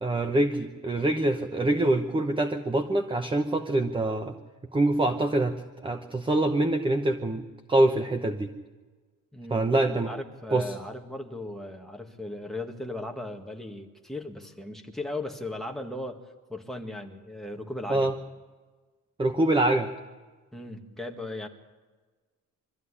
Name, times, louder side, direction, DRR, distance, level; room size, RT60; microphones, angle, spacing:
voice 1, 0.0-4.3 4.7-7.4 7.7-8.5 9.5-10.1 10.5-10.7 17.9-18.1 19.2-19.9, right 2 dB, 15° right, 7 dB, 0.9 m, -25 dB
voice 2, 9.3-9.6 9.9-16.2 16.5-18.1 20.5-21.5, left 2 dB, ahead, 2 dB, 1.9 m, -37 dB
24.0 x 14.0 x 9.9 m, 1.3 s
cardioid pair, 165°, 33 cm